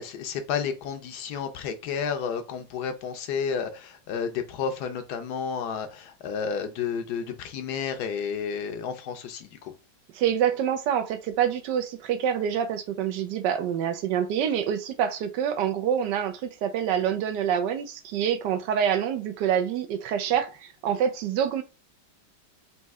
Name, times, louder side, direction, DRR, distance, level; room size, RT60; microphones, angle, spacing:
voice 1, 0.0-9.7, left 6 dB, 75° left, 1.2 m, -31 dB
voice 2, 10.2-21.6, right 9 dB, 90° right, 1.2 m, -26 dB
4.2 x 2.7 x 3.5 m
omnidirectional pair, 1.9 m